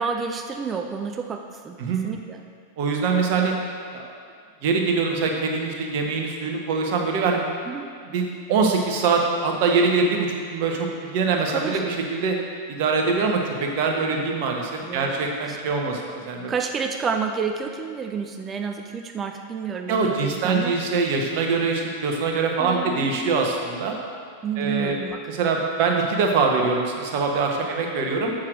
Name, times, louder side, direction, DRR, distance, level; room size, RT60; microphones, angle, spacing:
voice 1, 0.0-1.8 2.0-2.4 7.7-7.9 11.5-11.8 14.8-15.2 15.5-15.6 16.5-20.7 22.6-23.2 24.4-25.2, right 6 dB, 20° right, 5 dB, 0.5 m, -29 dB
voice 2, 2.8-3.5 3.9-4.1 4.6-7.4 8.0-12.4 12.7-16.5 19.9-24.0 24.6-25.0 25.3-28.3, right 4 dB, 45° right, 1 dB, 1.3 m, -23 dB
7.3 x 6.4 x 6.3 m, 2.1 s
figure-of-eight pair, 90°, 0 cm